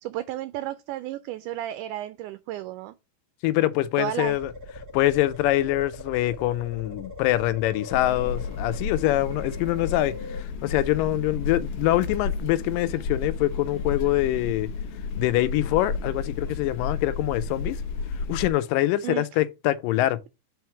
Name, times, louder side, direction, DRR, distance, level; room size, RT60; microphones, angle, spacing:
voice 1, 0.0-3.0 4.0-4.4 19.0-19.4, right 13 dB, 80° right, 1.9 m, -33 dB
voice 2, 3.4-4.5 4.9-14.7 15.2-17.8 18.3-20.3, left 15 dB, 85° left, 2.3 m, -24 dB
sound 1, 4.3-10.4, left 3 dB, 50° right, 2.1 m, -41 dB
sound 2, 7.9-18.5, left 4 dB, 65° left, 1.6 m, -32 dB
4.9 x 4.6 x 5.8 m
omnidirectional pair, 3.8 m